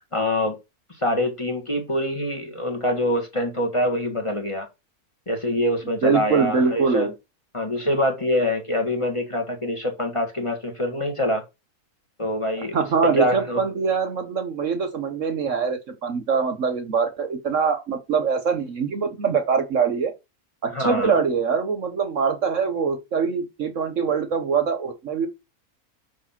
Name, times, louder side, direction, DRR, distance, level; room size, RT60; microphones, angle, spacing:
voice 1, 0.1-0.6 1.0-4.7 5.3-7.1 7.5-11.4 12.2-13.6 20.7-21.1, left 1 dB, 20° left, 1.7 m, -25 dB
voice 2, 6.0-7.1 12.7-20.1 20.6-25.3, right 5 dB, 55° right, 1.3 m, -23 dB
5.6 x 4.7 x 5.8 m
omnidirectional pair, 1.6 m